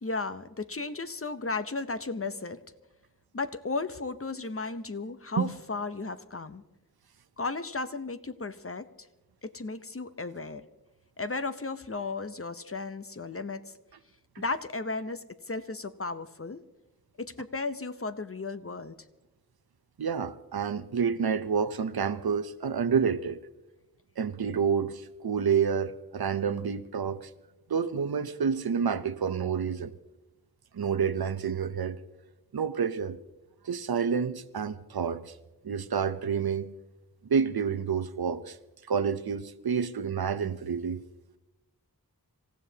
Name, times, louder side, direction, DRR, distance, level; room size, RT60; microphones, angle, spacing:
voice 1, 0.0-2.6 3.3-6.6 7.4-9.1 9.4-10.7 11.2-13.8 14.4-16.6 17.2-18.9, left 3 dB, 40° left, 11 dB, 0.8 m, -35 dB
voice 2, 20.0-23.4 24.2-27.3 27.7-29.9 30.7-32.0 32.5-33.2 33.6-35.3 35.6-36.7 37.3-38.6 38.9-41.0, right 6 dB, 80° right, 13 dB, 0.7 m, -29 dB
26.5 x 15.5 x 2.8 m, 1.0 s
wide cardioid pair, 60°, 36 cm